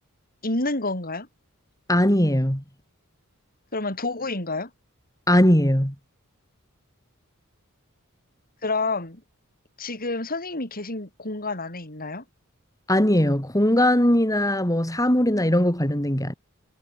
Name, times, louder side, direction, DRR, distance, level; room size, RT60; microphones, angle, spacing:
voice 1, 0.4-1.3 3.7-4.7 8.6-9.2 9.8-12.2, left 2 dB, 45° left, 6.6 m, -29 dB
voice 2, 1.9-2.6 5.3-5.9 12.9-16.3, left 1 dB, 15° left, 4.9 m, -20 dB
head